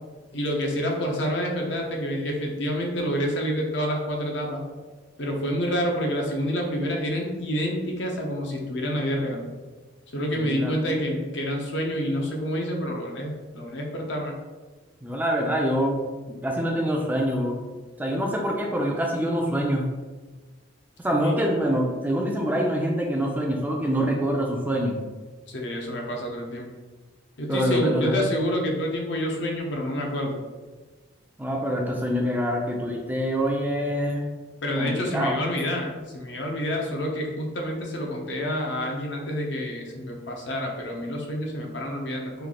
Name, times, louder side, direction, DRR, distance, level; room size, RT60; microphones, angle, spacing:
voice 1, 0.3-4.6 5.2-9.5 10.1-14.3 21.2-21.3 25.5-26.7 27.4-30.4 34.6-42.5, equal, 65° left, 0 dB, 0.7 m, -28 dB
voice 2, 10.3-11.0 15.0-17.6 18.0-19.9 21.0-25.0 27.5-28.2 31.4-34.3 34.8-35.4, equal, 10° right, 0 dB, 0.3 m, -25 dB
3.2 x 2.4 x 3.6 m, 1.3 s
head